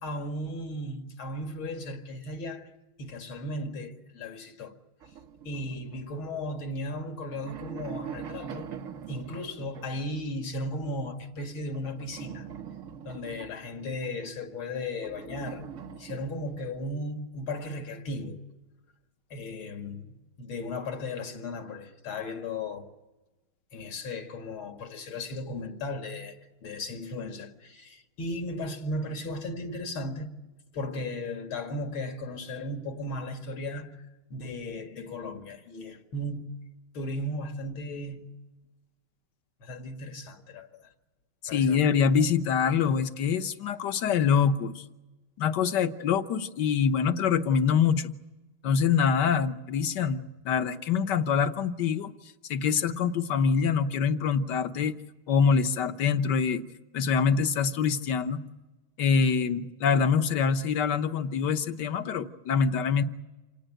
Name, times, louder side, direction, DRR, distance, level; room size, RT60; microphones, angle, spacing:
voice 1, 0.0-2.7 3.0-4.7 5.4-8.7 9.1-12.5 13.0-15.7 16.0-18.4 19.3-22.9 23.7-30.3 30.7-33.9 34.3-36.6 36.9-38.3 39.6-40.9 41.5-41.8, left 1 dB, 75° left, 2.8 m, -36 dB
sound 1, 5.0-6.6 7.1-10.2 11.7-14.3 15.0-16.9, right 8 dB, 50° right, 1.1 m, -43 dB
voice 2, 41.4-44.8 45.4-48.1 48.6-52.1 52.5-54.9 55.3-56.6 56.9-58.4 59.0-63.0, left 6 dB, 60° left, 1.6 m, -25 dB
27.5 x 18.5 x 9.0 m
omnidirectional pair, 2.3 m